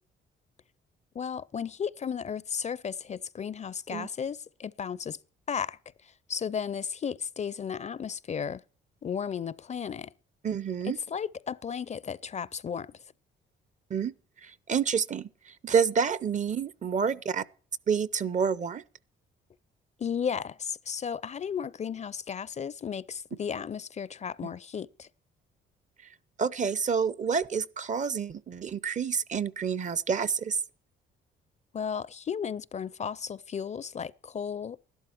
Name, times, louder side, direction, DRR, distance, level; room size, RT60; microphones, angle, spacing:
voice 1, 1.1-5.2 5.5-8.6 9.0-10.1 10.8-13.0 20.0-25.1 31.7-34.8, left 7 dB, 35° left, 0.5 m, -34 dB
voice 2, 10.4-11.0 13.9-14.1 14.4-17.4 17.9-18.8 26.4-30.6, right 6 dB, 40° right, 0.6 m, -28 dB
12.5 x 12.0 x 4.4 m
cardioid pair, 90°, 20 cm